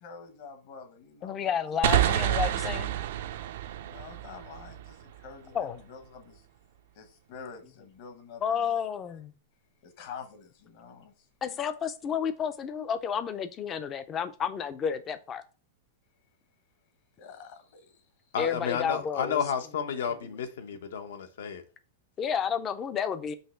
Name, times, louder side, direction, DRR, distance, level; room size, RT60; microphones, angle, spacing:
voice 1, 0.0-1.4 1.8-2.4 3.8-6.5 6.9-9.2 9.8-11.3 17.2-18.1, left 5 dB, 40° left, 1.0 m, -47 dB
voice 2, 1.2-2.9 5.5-5.8 8.4-9.3 11.4-15.4 18.4-19.4 22.2-23.3, left 7 dB, 15° left, 0.4 m, -31 dB
sound 1, 1.8-5.3, right 12 dB, 55° right, 0.5 m, -28 dB
voice 3, 18.3-21.6, left 7 dB, 75° left, 1.0 m, -31 dB
5.5 x 3.1 x 5.6 m
supercardioid pair, 175°, 0 cm